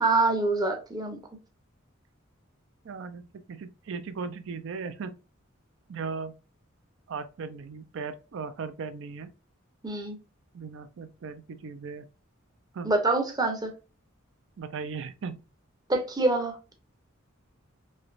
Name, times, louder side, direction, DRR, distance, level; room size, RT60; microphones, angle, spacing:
voice 1, 0.0-1.2 9.8-10.2 12.8-13.7 15.9-16.6, right 2 dB, 20° right, 0.6 m, -25 dB
voice 2, 2.8-3.2 3.5-5.2 5.9-6.3 7.1-9.3 10.5-12.1 12.7-12.9 14.6-15.4, right 5 dB, 60° right, 0.4 m, -37 dB
3.2 x 2.9 x 2.4 m
head